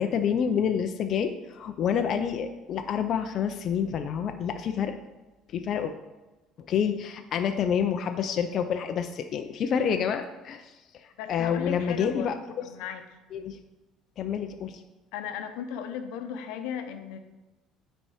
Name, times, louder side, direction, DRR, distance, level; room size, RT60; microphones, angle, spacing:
voice 1, 0.0-4.9 5.5-5.9 6.7-10.7 11.3-12.6 13.3-13.6 14.2-14.8, left 7 dB, 40° left, 6 dB, 0.5 m, -28 dB
voice 2, 11.2-13.1 15.1-17.2, left 8 dB, 85° left, 8 dB, 0.7 m, -36 dB
9.0 x 4.4 x 4.8 m, 1.1 s
cardioid pair, 160°, 0 cm